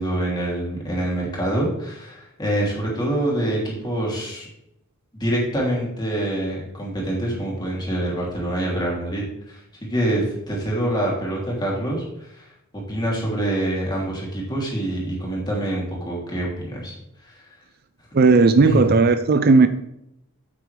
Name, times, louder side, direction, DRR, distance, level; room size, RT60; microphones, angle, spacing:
voice 1, 0.0-4.5 5.1-12.5 12.7-16.9 17.2-17.5 18.6-18.8, right 1 dB, 20° left, 3.0 m, -26 dB
voice 2, 18.1-19.7, right 4 dB, 45° right, 0.5 m, -15 dB
8.9 x 8.3 x 3.3 m
head